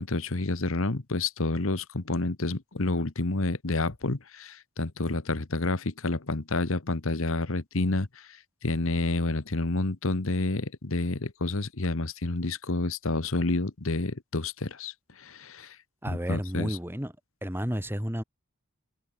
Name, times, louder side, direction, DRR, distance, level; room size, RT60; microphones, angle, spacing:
voice 1, 0.0-15.8 16.3-16.8, left 2 dB, 70° left, 1.3 m, -29 dB
voice 2, 16.0-17.1 17.4-18.2, equal, 10° right, 4.0 m, -31 dB
head